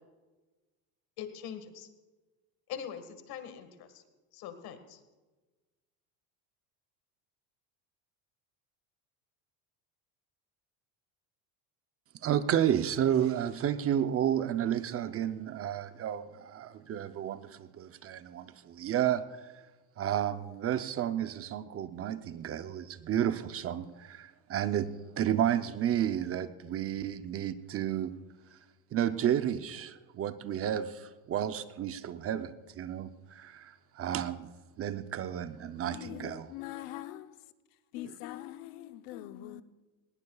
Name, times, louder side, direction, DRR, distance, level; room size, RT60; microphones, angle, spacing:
voice 1, 1.2-1.9 2.7-4.1 4.3-5.0, left 8 dB, 55° left, 1.8 m, -42 dB
voice 2, 12.2-19.5 20.0-28.2 28.5-28.6 28.9-34.5 34.8-36.5 38.0-38.2, right 10 dB, 35° right, 0.6 m, -32 dB
voice 3, 35.9-37.4 37.9-39.6, left 14 dB, 75° left, 0.9 m, -43 dB
19.5 x 17.5 x 2.4 m
cardioid pair, 130°, 43 cm